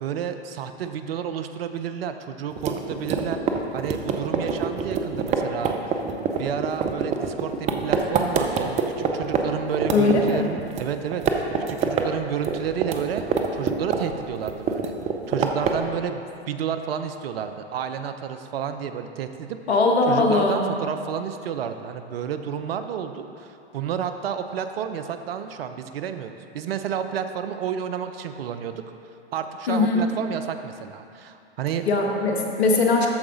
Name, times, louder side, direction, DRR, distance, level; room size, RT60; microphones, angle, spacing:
voice 1, 0.0-3.4 3.7-5.8 6.4-11.4 11.7-13.3 13.6-14.9 15.3-19.6 20.1-28.8 29.3-31.8, right 8 dB, 60° right, 9 dB, 0.6 m, -30 dB
sound 1, 2.6-9.4 9.7-10.9 11.1-12.1 12.3-14.2 14.5-15.9, right 6 dB, 20° right, 0.6 m, -25 dB
voice 2, 9.9-10.5 19.7-20.6 29.7-30.0 31.9-33.1, left 3 dB, 70° left, 1 dB, 1.4 m, -20 dB
13.5 x 4.9 x 3.8 m, 2.5 s
hypercardioid pair, 105°, 33 cm